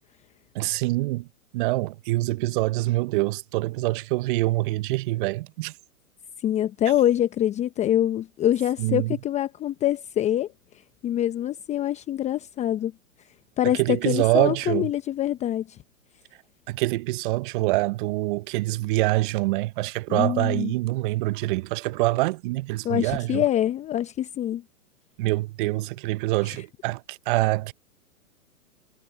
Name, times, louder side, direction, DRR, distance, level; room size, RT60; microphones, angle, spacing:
voice 1, 0.5-1.3 1.5-5.7 8.8-9.2 13.6-14.9 16.7-23.4 25.2-27.7, right 20 dB, 35° right, 1.0 m, -25 dB
voice 2, 6.4-10.5 11.0-12.9 13.6-15.8 20.1-20.7 22.8-24.6, left 12 dB, 15° left, 0.9 m, -25 dB
hypercardioid pair, 125°, 43 cm